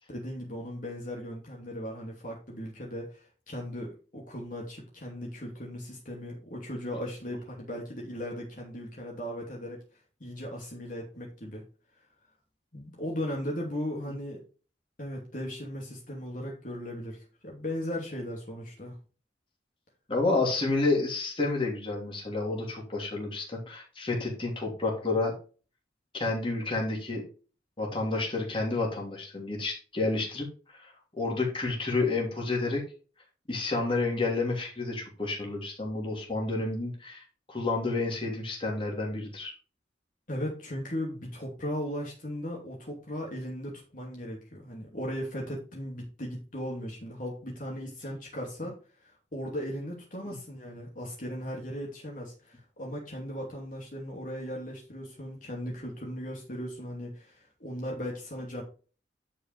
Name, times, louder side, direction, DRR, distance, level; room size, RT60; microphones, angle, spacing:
voice 1, 0.1-9.8 10.2-11.6 12.7-14.4 15.0-19.0 40.3-48.8 49.0-58.6, equal, 45° left, -2 dB, 2.6 m, -37 dB
voice 2, 20.1-25.3 26.1-27.2 27.8-30.4 30.7-32.8 33.5-39.5, left 3 dB, 30° left, -1 dB, 3.1 m, -30 dB
11.0 x 5.4 x 3.5 m, 0.36 s
head